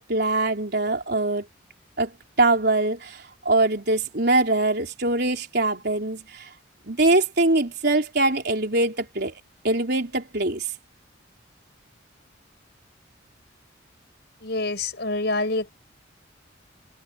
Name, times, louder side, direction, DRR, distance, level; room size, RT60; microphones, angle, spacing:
voice 1, 0.0-1.5 2.0-2.1 2.4-6.5 6.9-10.7, right 2 dB, 55° right, 4.2 m, -23 dB
voice 2, 14.4-15.7, left 2 dB, 60° left, 5.8 m, -26 dB
head